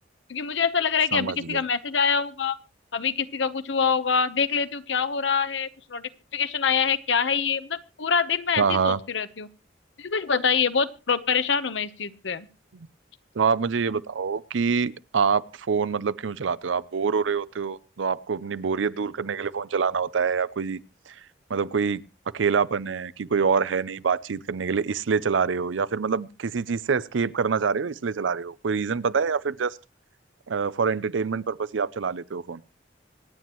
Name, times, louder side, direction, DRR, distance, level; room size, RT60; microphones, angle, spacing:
voice 1, 0.3-2.6 2.9-9.5 10.0-12.5, left 6 dB, 75° left, 0.9 m, -25 dB
voice 2, 1.1-1.6 8.6-9.0 13.3-20.8 21.1-22.0 22.3-29.8 30.5-32.6, right 5 dB, 90° right, 0.6 m, -26 dB
25.5 x 9.3 x 3.0 m
head